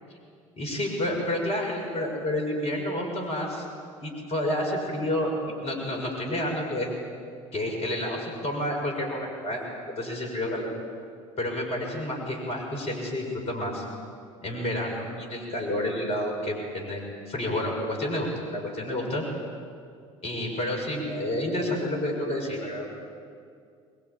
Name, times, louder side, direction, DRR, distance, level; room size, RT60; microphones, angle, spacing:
voice 1, 0.6-3.7 4.0-5.3 5.6-6.9 7.5-9.6 10.0-10.7 11.4-13.8 14.4-19.2 20.2-22.9, left 1 dB, 40° left, 1 dB, 6.8 m, -29 dB
25.0 x 21.5 x 9.0 m, 2.3 s
figure-of-eight pair, 65°, 16 cm